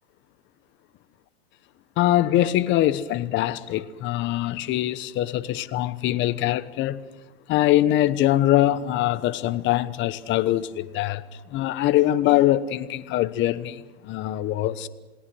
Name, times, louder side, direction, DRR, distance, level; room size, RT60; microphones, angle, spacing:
voice 1, 2.0-7.0 7.5-11.2 11.5-14.9, left 14 dB, 35° left, 1.1 m, -23 dB
28.5 x 18.5 x 6.3 m
hypercardioid pair, 130°, 35 cm